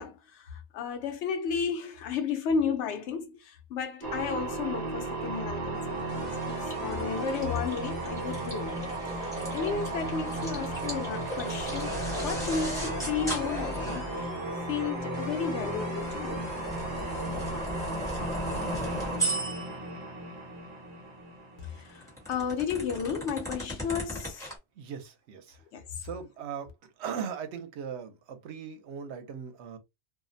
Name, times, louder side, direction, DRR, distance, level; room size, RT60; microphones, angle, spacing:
voice 1, 0.0-8.8 9.1-12.0 12.2-14.3 14.7-16.6 21.6-24.5 25.7-25.9, left 6 dB, 80° left, 0.9 m, -33 dB
sound 1, 4.0-22.3, right 2 dB, 45° right, 0.6 m, -35 dB
sound 2, 5.7-17.6, left 4 dB, 50° left, 0.7 m, -47 dB
sound 3, 6.0-14.3 15.2-20.0 21.6-24.5, equal, 5° left, 1.0 m, -37 dB
voice 2, 24.8-25.6 26.0-26.7 27.0-29.8, right 7 dB, 80° right, 0.9 m, -38 dB
2.5 x 2.0 x 2.5 m
omnidirectional pair, 1.2 m